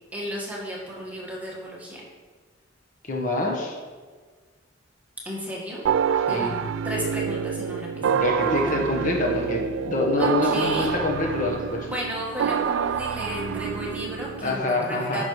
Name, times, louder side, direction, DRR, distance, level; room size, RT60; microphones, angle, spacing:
voice 1, 0.1-2.0 5.2-5.8 6.3-8.1 10.2-11.0 11.8-15.3, equal, 10° right, -4 dB, 1.6 m, -33 dB
voice 2, 3.0-3.8 6.3-6.5 8.0-11.9 14.4-15.3, left 2 dB, 45° left, -1 dB, 1.2 m, -26 dB
sound 1, 5.8-14.6, right 7 dB, 80° right, 0.3 m, -27 dB
10.0 x 5.9 x 3.2 m, 1.5 s
head